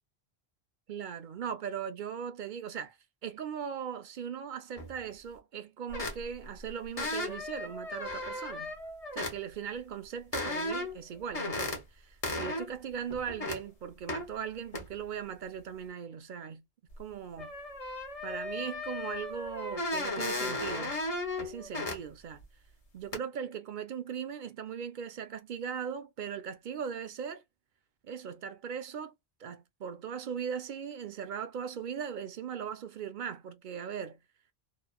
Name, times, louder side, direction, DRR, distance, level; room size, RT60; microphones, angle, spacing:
voice 1, 0.9-3.0 3.2-8.7 9.1-16.6 17.0-17.5 18.2-21.0 21.4-22.4 22.9-27.4 28.0-29.1 29.4-34.2, right 7 dB, 60° right, 0.6 m, -39 dB
sound 1, 4.8-5.0 5.9-6.5 7.0-9.4 10.3-11.0 11.3-11.8 12.2-12.7 13.1-13.6 14.1-14.3 14.7-14.9 16.9-17.0 17.4-22.0 22.4-22.5 23.1-23.2, left 2 dB, 35° left, 1.0 m, -35 dB
2.9 x 2.3 x 2.3 m
omnidirectional pair, 1.1 m